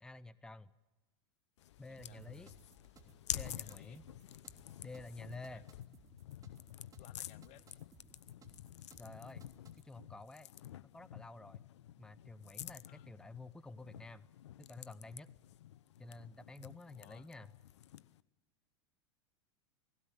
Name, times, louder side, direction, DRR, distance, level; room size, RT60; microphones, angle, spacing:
voice 1, 0.0-0.7 1.8-2.5 3.3-4.0 4.8-5.6 9.0-9.4 9.8-10.5 10.8-11.6 12.0-14.3 14.6-15.3 16.0-17.5, left 2 dB, 5° left, 17 dB, 0.7 m, -50 dB
sound 1, 1.6-18.2, left 12 dB, 75° left, 0.7 m, -49 dB
voice 2, 1.9-2.6 3.6-4.0 5.5-5.7 7.0-7.7 12.9-13.1 16.9-17.3, left 15 dB, 50° left, 16 dB, 1.1 m, -61 dB
sound 2, 2.0-9.9, right 5 dB, 25° right, 3.2 m, -63 dB
18.5 x 16.5 x 9.8 m, 1.1 s
hypercardioid pair, 100°, 15 cm